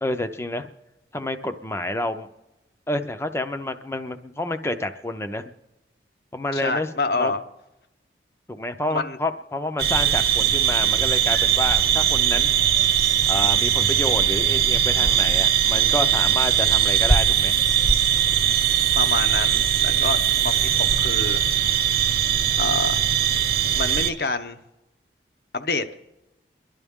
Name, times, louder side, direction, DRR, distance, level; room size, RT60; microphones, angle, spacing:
voice 1, 0.0-0.7 1.1-2.3 2.9-5.5 6.3-7.3 8.5-12.5 13.3-17.6, left 1 dB, 15° left, 9 dB, 0.5 m, -29 dB
voice 2, 6.5-7.4 8.9-9.2 19.0-20.2 20.4-21.5 22.6-23.0 23.7-24.6 25.5-25.9, left 3 dB, 60° left, 9 dB, 0.8 m, -27 dB
sound 1, 9.8-24.1, right 9 dB, 55° right, 1.0 m, -20 dB
30.0 x 11.0 x 3.6 m, 0.97 s
head